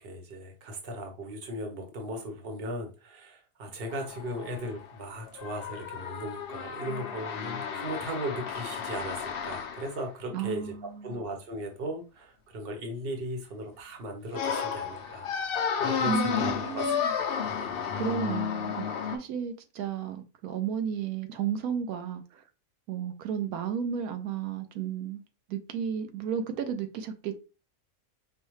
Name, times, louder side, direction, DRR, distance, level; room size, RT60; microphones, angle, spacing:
voice 1, 0.0-16.9 17.2-17.7, right 1 dB, 45° right, 1.1 m, -37 dB
sound 1, 3.9-10.0 14.3-19.2, left 7 dB, 60° left, 0.6 m, -32 dB
voice 2, 10.3-11.2 16.1-17.1 17.9-22.4 22.9-25.2 25.5-27.4, right 7 dB, 85° right, 1.1 m, -33 dB
5.4 x 2.2 x 3.1 m
omnidirectional pair, 1.5 m